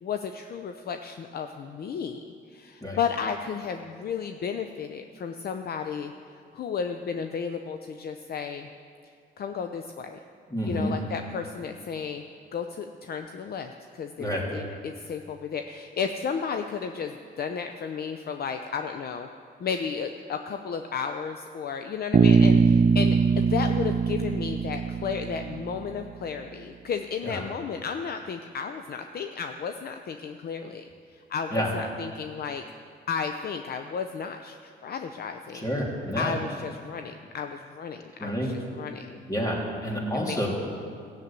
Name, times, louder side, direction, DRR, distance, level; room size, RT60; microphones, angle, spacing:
voice 1, 0.0-2.2 2.5-6.1 6.5-8.7 9.4-10.2 10.6-12.2 12.5-19.3 19.6-30.8 31.1-32.6 33.1-35.6 36.1-39.2 40.1-40.5, left 6 dB, 50° left, 6 dB, 0.7 m, -33 dB
voice 2, 10.5-10.9 14.2-14.5 27.2-27.4 31.5-31.7 35.5-36.3 38.2-38.6 39.3-40.5, equal, 20° left, -2 dB, 3.4 m, -29 dB
Bass guitar, 22.1-26.0, right 5 dB, 30° right, 0.5 m, -22 dB
15.0 x 7.5 x 8.9 m, 2.4 s
cardioid pair, 90°, 20 cm